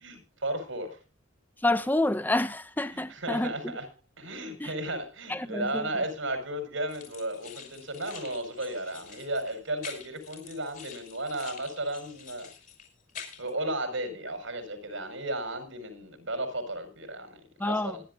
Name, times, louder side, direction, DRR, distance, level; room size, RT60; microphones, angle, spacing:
voice 1, 0.0-1.0 2.9-3.9 4.2-12.5 13.4-18.0, right 1 dB, 90° right, 5.3 m, -34 dB
voice 2, 1.6-3.7 4.6-4.7 5.3-5.9 17.6-18.0, left 1 dB, 10° left, 0.8 m, -28 dB
sound 1, 6.9-13.5, left 7 dB, 45° left, 6.0 m, -47 dB
25.5 x 11.5 x 2.6 m
head